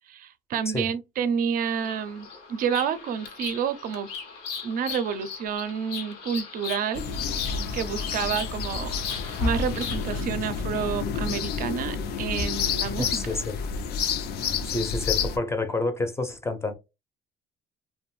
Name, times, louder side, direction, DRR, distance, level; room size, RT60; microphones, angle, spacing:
voice 1, 0.1-4.1 4.6-8.9 9.4-13.2, right 7 dB, 55° right, 0.4 m, -29 dB
Bird vocalization bird call bird song, 1.7-10.3, left 6 dB, 90° left, 0.8 m, -38 dB
sound 1, 6.9-15.4, left 6 dB, 70° left, 0.4 m, -29 dB
voice 2, 13.0-13.6 14.4-16.7, left 2 dB, 15° left, 0.5 m, -29 dB
2.5 x 2.1 x 3.0 m
cardioid pair, 110°, 17 cm